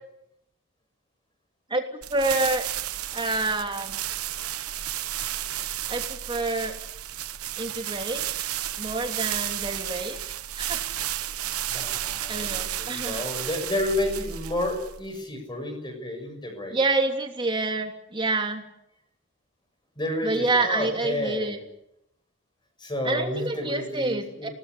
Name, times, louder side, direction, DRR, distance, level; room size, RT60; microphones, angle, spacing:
sound 1, 2.0-15.1, right 12 dB, 85° right, 1.0 m, -32 dB
voice 1, 2.1-2.7 3.1-4.0 5.9-6.8 7.6-8.3 8.8-10.2 10.5-10.8 11.2-11.6 12.3-13.2 16.7-18.6 20.2-21.6 23.0-24.5, right 2 dB, 20° right, 4 dB, 3.1 m, -27 dB
voice 2, 11.7-16.8 20.0-21.6 22.8-24.5, left 1 dB, 20° left, 5 dB, 7.1 m, -31 dB
24.5 x 19.0 x 10.0 m, 0.81 s
head